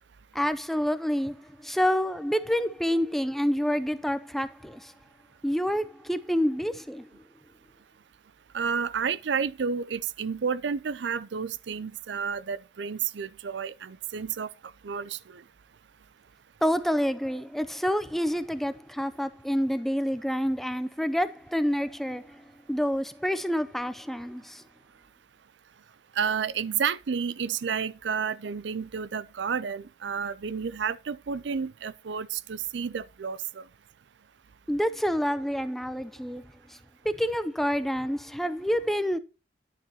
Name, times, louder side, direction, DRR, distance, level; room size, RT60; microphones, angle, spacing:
voice 1, 0.3-4.9 5.4-7.2 16.6-24.6 34.7-36.8 37.0-39.2, equal, ahead, 0.5 m, -28 dB
voice 2, 8.5-14.5 14.8-15.4 26.2-33.6, right 6 dB, 75° right, 0.5 m, -31 dB
10.5 x 6.8 x 2.9 m
head